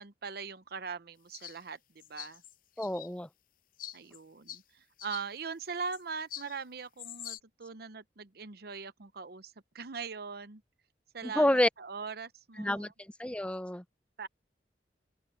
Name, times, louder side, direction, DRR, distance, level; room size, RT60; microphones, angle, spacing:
voice 1, 0.0-2.4 3.9-10.6 11.1-11.5 11.8-12.9 14.2-14.3, right 5 dB, 60° right, 0.8 m, -41 dB
sound 1, 1.3-1.6 2.0-3.1 3.8-4.2 4.5-4.6 5.0-5.2 5.9-6.0 6.3-6.6 7.0-7.4, left 11 dB, 50° left, 0.6 m, -44 dB
voice 2, 2.8-3.3 11.2-11.7 12.6-13.8, left 1 dB, 5° left, 0.5 m, -29 dB
open air
head